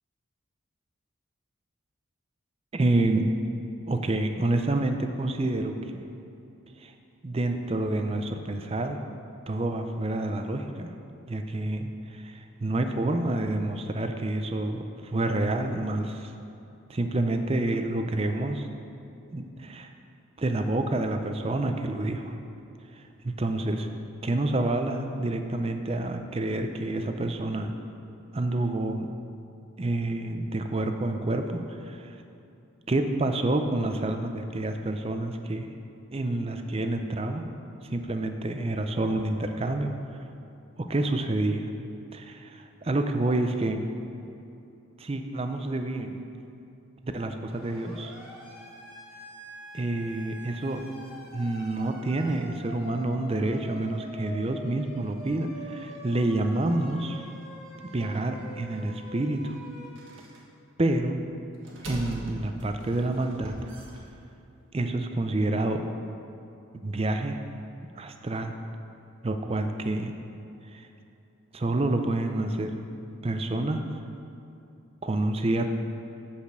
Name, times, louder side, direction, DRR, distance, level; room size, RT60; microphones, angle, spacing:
voice 1, 2.7-3.2 3.9-6.0 6.8-6.9 7.2-9.0 9.5-10.9 11.3-16.3 16.9-18.7 19.3-19.9 20.4-22.3 22.9-23.9 24.2-27.7 28.3-29.1 29.8-32.2 32.9-35.7 36.1-37.4 37.9-39.9 40.8-41.7 42.1-43.9 45.0-46.2 47.0-48.2 49.7-50.8 51.3-57.3 57.9-59.6 60.8-61.2 61.8-63.7 64.7-65.8 66.8-67.4 68.0-68.6 69.2-70.1 70.7-70.9 71.5-72.8 73.2-73.8 75.0-75.7, right 2 dB, 30° right, 6 dB, 0.4 m, -28 dB
Siren, 47.5-59.9, equal, 5° right, 1.7 m, -45 dB
sound 1, 60.0-60.4 61.5-64.5, right 1 dB, 65° right, 1.5 m, -42 dB
8.1 x 5.1 x 6.7 m, 2.8 s
head